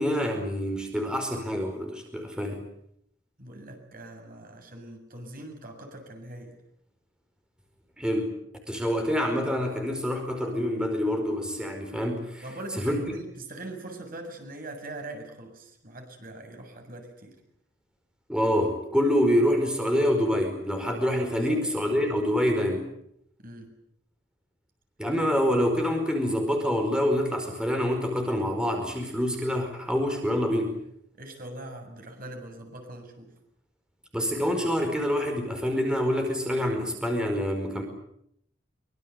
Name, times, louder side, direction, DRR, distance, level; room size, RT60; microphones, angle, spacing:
voice 1, 0.0-2.7 8.0-8.4 8.7-12.4 12.7-13.1 18.3-22.9 25.0-30.8 34.1-37.8, equal, 5° right, 3 dB, 5.0 m, -26 dB
voice 2, 3.4-6.5 12.4-17.4 21.4-21.6 23.4-23.7 31.1-33.3, right 2 dB, 50° right, 5 dB, 7.3 m, -42 dB
25.0 x 25.0 x 8.4 m, 0.74 s
head